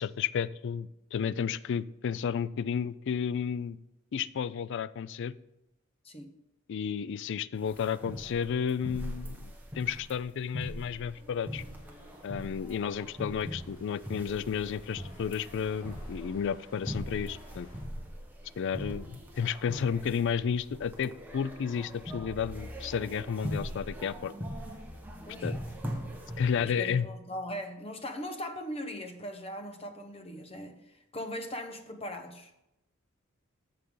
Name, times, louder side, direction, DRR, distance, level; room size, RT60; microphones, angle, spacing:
voice 1, 0.0-3.8 4.1-5.3 6.7-11.6 12.2-17.7 18.6-24.3 25.4-25.6 26.4-27.1, left 7 dB, 60° left, 19 dB, 0.3 m, -32 dB
sound 1, 7.5-26.7, equal, 10° right, 1.4 m, -41 dB
sound 2, 11.5-17.8, equal, 90° left, 3.5 m, -55 dB
voice 2, 25.3-25.6 26.6-32.5, left 1 dB, 30° left, 7 dB, 1.0 m, -40 dB
14.5 x 6.7 x 3.8 m, 0.90 s
head